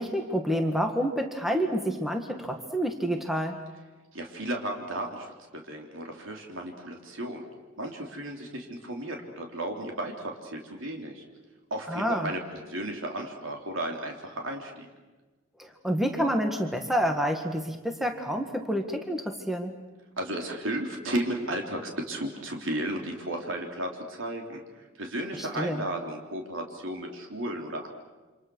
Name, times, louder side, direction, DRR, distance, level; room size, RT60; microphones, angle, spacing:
voice 1, 0.0-3.6 11.9-12.3 15.6-19.8 25.3-25.8, equal, ahead, 4 dB, 1.9 m, -28 dB
voice 2, 4.1-5.3 5.7-7.4 7.8-11.2 11.7-14.9 20.2-24.6 25.0-27.9, right 1 dB, 75° right, 2 dB, 3.6 m, -34 dB
28.5 x 26.5 x 6.4 m, 1.2 s
head